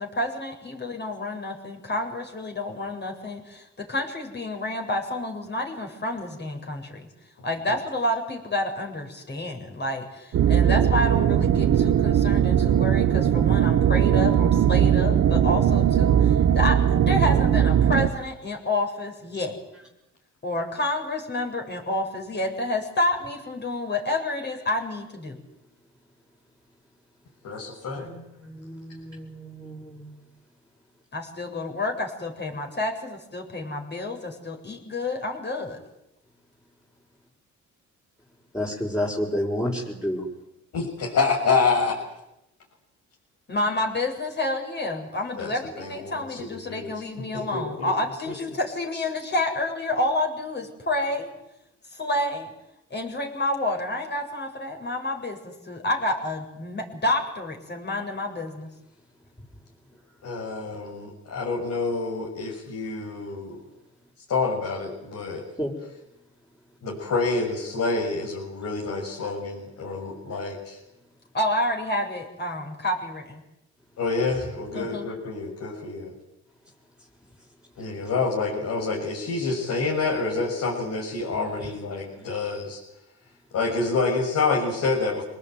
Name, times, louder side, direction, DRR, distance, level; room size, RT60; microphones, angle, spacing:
voice 1, 0.0-7.1 7.4-19.6 20.4-25.4 31.1-35.8 43.5-51.3 51.9-52.5 52.9-58.7 71.3-73.4 74.7-75.1, left 1 dB, 35° left, 3 dB, 7.3 m, -29 dB
sound 1, 10.3-18.1, right 9 dB, 60° right, 1.5 m, -19 dB
voice 2, 27.4-28.1 40.7-42.0 45.4-46.9 47.3-47.9 48.3-48.4 60.2-63.6 64.3-65.4 66.8-70.8 74.0-76.1 77.8-82.8 83.5-85.2, left 4 dB, 65° left, -3 dB, 7.4 m, -27 dB
voice 3, 28.0-30.1 38.5-40.2 65.6-65.7, equal, 10° left, -5 dB, 6.0 m, -30 dB
26.5 x 19.5 x 9.5 m, 0.88 s
cardioid pair, 90°, 30 cm